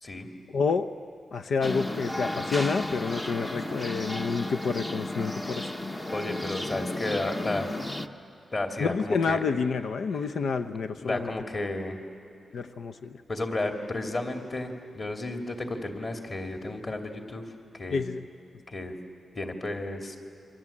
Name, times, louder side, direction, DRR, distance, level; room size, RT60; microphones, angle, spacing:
voice 1, 0.5-0.9 1.3-5.7 8.8-11.3 12.5-13.2 17.9-18.2, left 5 dB, 75° left, 8 dB, 0.7 m, -29 dB
sound 1, 1.6-8.1, left 1 dB, 15° left, 0.8 m, -33 dB
voice 2, 6.1-7.7 8.5-9.5 10.9-12.0 13.3-17.4 17.7-18.0 18.7-19.0 19.3-20.1, left 2 dB, 35° left, 4 dB, 2.7 m, -32 dB
28.5 x 24.0 x 8.7 m, 2.6 s
wide cardioid pair, 140°, 0 cm